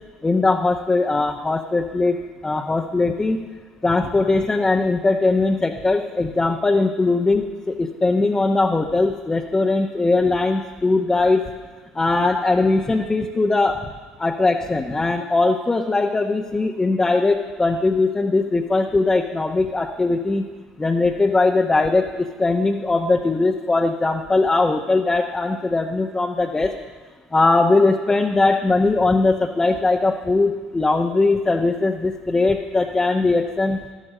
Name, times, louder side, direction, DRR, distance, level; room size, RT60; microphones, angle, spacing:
voice 1, 0.2-3.4 3.8-11.4 11.9-13.8 14.2-20.5 20.8-26.7 27.3-33.8, left 3 dB, 20° left, 1 dB, 0.9 m, -20 dB
12.0 x 9.0 x 6.6 m, 1.4 s
hypercardioid pair, 65°, 3 cm